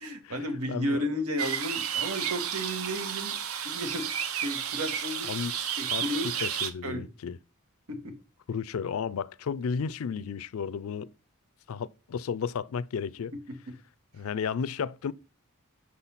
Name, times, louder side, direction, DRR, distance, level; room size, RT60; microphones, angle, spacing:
voice 1, 0.0-3.3 3.6-6.3 6.8-7.1 7.9-8.2 13.5-13.7, equal, 90° right, 1.5 m, -33 dB
voice 2, 0.7-1.0 5.3-5.5 5.9-6.0 6.4-7.4 8.5-11.1 11.7-13.3 14.1-15.1, left 6 dB, 65° left, 0.4 m, -33 dB
sound 1, 1.4-6.7, right 8 dB, 70° right, 0.8 m, -32 dB
6.3 x 4.1 x 5.6 m
head